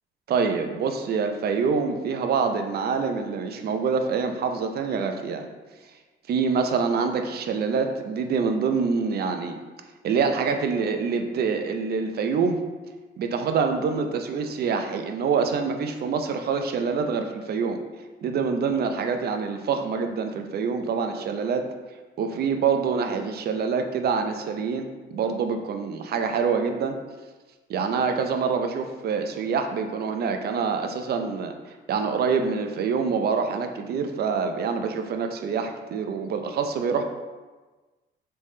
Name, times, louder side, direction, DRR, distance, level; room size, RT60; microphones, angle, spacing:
voice 1, 0.3-5.5 6.3-9.6 10.0-12.6 13.2-17.8 18.2-21.6 22.2-27.0 27.7-31.5 31.9-37.0, right 5 dB, 55° right, 6 dB, 0.4 m, -26 dB
3.4 x 3.2 x 2.7 m, 1.3 s
cardioid pair, 90°, 20 cm